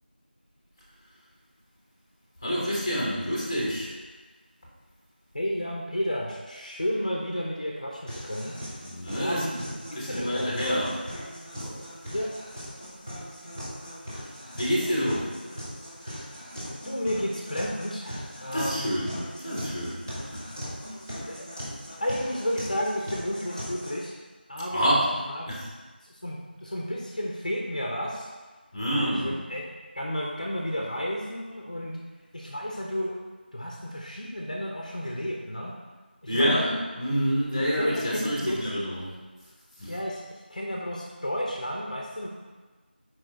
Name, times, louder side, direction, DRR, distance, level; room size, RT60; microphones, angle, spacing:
voice 1, 2.4-3.9 8.8-9.6 9.9-11.0 11.5-11.7 14.6-15.3 18.5-20.4 24.7-25.1 25.5-25.6 28.7-29.4 36.3-39.1 39.8-39.9, equal, 15° left, -5 dB, 1.2 m, -27 dB
voice 2, 5.3-8.5 9.1-9.7 10.1-10.6 12.1-12.3 16.1-16.2 16.8-18.9 21.2-21.5 22.0-24.1 24.5-24.9 25.3-25.5 26.1-28.3 28.9-29.6 29.9-32.0 32.3-33.2 33.5-35.7 36.2-36.6 37.8-38.7 39.9-42.3, equal, 45° left, -1 dB, 0.9 m, -32 dB
sound 1, 8.1-24.1, equal, 15° right, 1.1 m, -39 dB
6.2 x 4.7 x 4.3 m, 1.3 s
figure-of-eight pair, 175°, 6 cm